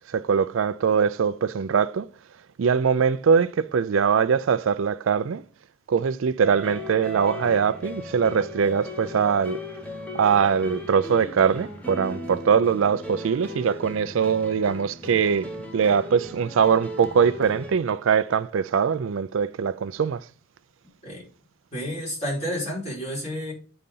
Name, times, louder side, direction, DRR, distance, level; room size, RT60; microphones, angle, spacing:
voice 1, 0.1-2.1 2.6-5.4 5.9-9.6 10.1-20.3, right 6 dB, 70° right, 0.4 m, -22 dB
sound 1, 6.4-17.8, left 1 dB, 5° left, 1.0 m, -37 dB
voice 2, 21.7-23.5, equal, 30° left, 4.6 m, -30 dB
8.6 x 4.0 x 5.4 m
head